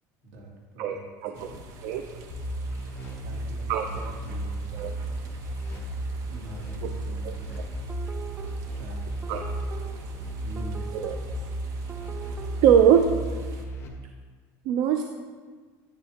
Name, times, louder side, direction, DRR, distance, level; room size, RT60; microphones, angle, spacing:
voice 1, 0.8-1.5 1.8-2.1 3.7-3.9 4.7-4.9 6.8-6.9 7.2-7.3 9.3-9.4 10.9-11.2 12.6-13.1 14.7-15.0, right 8 dB, 65° right, 6 dB, 0.5 m, -22 dB
sound 1, 1.3-13.7, right 2 dB, 50° right, 1.0 m, -44 dB
sound 2, 2.3-13.9, right 1 dB, 40° left, 1.6 m, -34 dB
voice 2, 3.1-4.7 6.3-7.6 8.6-9.2 10.4-11.2, right 1 dB, 85° right, -3 dB, 2.7 m, -44 dB
sound 3, 7.9-12.7, right 6 dB, 15° right, 0.3 m, -44 dB
10.5 x 9.1 x 2.9 m, 1.5 s
cardioid pair, 135°, 7 cm